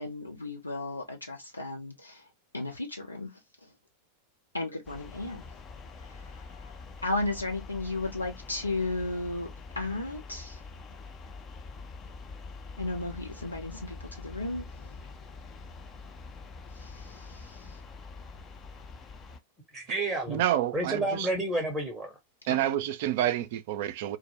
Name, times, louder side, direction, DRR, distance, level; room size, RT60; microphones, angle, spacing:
voice 1, 0.0-2.2 2.5-3.3 4.5-5.4 6.1-6.3 6.6-6.7 7.0-9.5 9.8-10.6 12.8-14.6 16.8-17.8, left 2 dB, 80° left, 0.7 m, -34 dB
sound 1, 4.8-19.4, left 4 dB, 25° left, 0.4 m, -45 dB
voice 2, 19.7-20.4 20.7-22.1, right 2 dB, 5° right, 0.7 m, -30 dB
voice 3, 20.3-21.3 22.5-24.2, right 12 dB, 50° right, 0.3 m, -28 dB
2.0 x 2.0 x 2.9 m
figure-of-eight pair, 90°, 0 cm